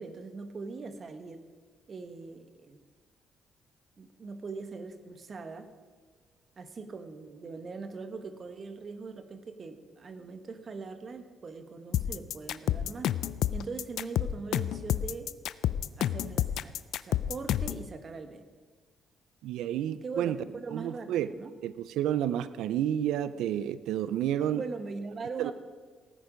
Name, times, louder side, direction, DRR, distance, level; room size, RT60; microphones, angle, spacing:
voice 1, 0.0-1.4 1.9-2.8 4.0-5.7 6.6-13.1 13.5-15.3 16.0-16.7 17.0-18.4 20.0-21.5 24.5-25.5, right 4 dB, 45° right, 9 dB, 1.3 m, -41 dB
sound 1, 11.9-17.8, left 11 dB, 80° left, 0.4 m, -29 dB
voice 2, 19.4-20.4 20.7-21.3 21.6-24.6 25.4-25.5, right 11 dB, 85° right, 15 dB, 0.4 m, -30 dB
16.5 x 9.6 x 5.1 m, 1.5 s
cardioid pair, 90°, 0 cm